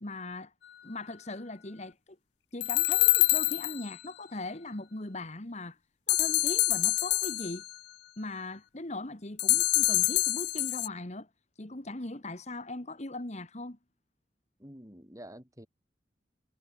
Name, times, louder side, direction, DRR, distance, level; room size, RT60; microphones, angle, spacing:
voice 1, 0.0-0.5 0.8-2.0 2.5-5.8 6.1-7.6 8.2-11.3 11.6-13.8, left 2 dB, 35° left, 1.7 m, -39 dB
sound 1, 2.6-3.9 6.1-7.7 9.4-10.9, left 20 dB, 65° left, 0.3 m, -26 dB
voice 2, 14.6-15.7, right 1 dB, 20° right, 5.5 m, -48 dB
head